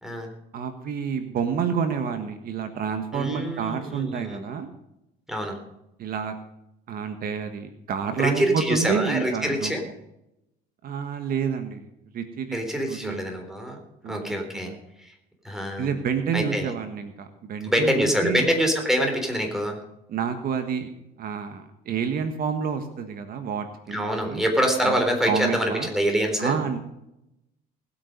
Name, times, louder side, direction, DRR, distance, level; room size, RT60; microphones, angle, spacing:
voice 1, 0.5-4.7 6.0-6.3 6.9-9.7 10.8-11.9 12.1-12.6 12.9-13.4 14.0-14.8 15.8-18.5 20.1-20.9 21.2-24.4 24.8-25.9 26.4-26.8, right 6 dB, 60° right, 8 dB, 1.5 m, -29 dB
voice 2, 3.1-4.4 5.3-5.6 8.2-9.8 12.5-13.8 14.1-14.7 15.0-15.1 15.4-15.9 16.3-16.7 17.6-19.8 23.9-26.6, equal, 5° right, 3 dB, 3.8 m, -25 dB
19.5 x 8.7 x 5.3 m, 0.86 s
cardioid pair, 110°, 17 cm